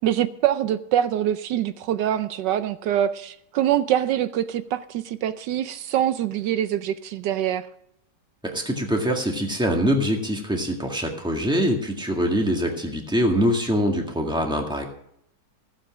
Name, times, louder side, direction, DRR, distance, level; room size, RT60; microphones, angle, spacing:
voice 1, 0.0-7.7, right 11 dB, 80° right, 12 dB, 1.3 m, -24 dB
voice 2, 8.4-14.9, equal, 5° right, 2 dB, 1.7 m, -24 dB
15.0 x 7.8 x 6.1 m, 0.72 s
omnidirectional pair, 1.9 m